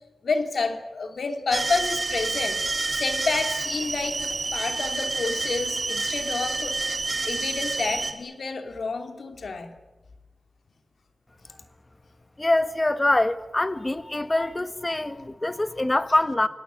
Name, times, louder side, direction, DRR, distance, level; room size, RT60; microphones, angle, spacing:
voice 1, 0.2-2.6 3.0-4.2 4.5-6.8 7.2-9.7, left 4 dB, 80° left, 3.1 m, -29 dB
sound 1, 1.5-8.1, right 3 dB, 50° right, 3.2 m, -28 dB
voice 2, 12.4-16.5, left 1 dB, 25° left, 1.4 m, -24 dB
28.5 x 18.0 x 10.0 m
wide cardioid pair, 75°, 0 cm